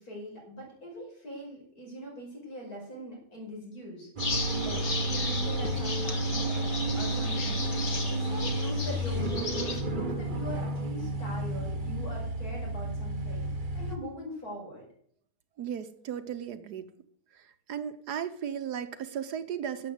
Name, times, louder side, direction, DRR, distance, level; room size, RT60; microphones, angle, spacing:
voice 1, 0.0-4.1 4.6-7.7 8.1-13.4 13.7-14.8, equal, 60° left, -2 dB, 6.3 m, -42 dB
sound 1, 4.2-9.8, left 3 dB, 40° left, 1.8 m, -35 dB
sound 2, 4.2-14.0, right 1 dB, 35° right, 1.1 m, -31 dB
voice 2, 15.6-16.9 17.7-19.9, right 8 dB, 70° right, 10 dB, 1.4 m, -35 dB
12.5 x 7.6 x 7.9 m, 0.63 s
omnidirectional pair, 1.8 m